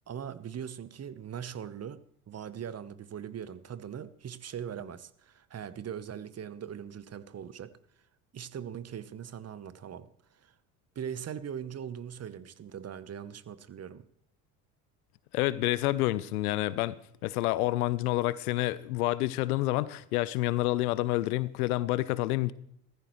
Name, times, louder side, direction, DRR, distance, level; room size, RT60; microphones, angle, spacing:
voice 1, 0.1-7.8 8.3-10.5 10.9-14.1, right 8 dB, 35° right, 1.0 m, -41 dB
voice 2, 15.3-22.5, left 17 dB, 80° left, 0.8 m, -28 dB
17.0 x 14.5 x 3.2 m
hypercardioid pair, 65°, 44 cm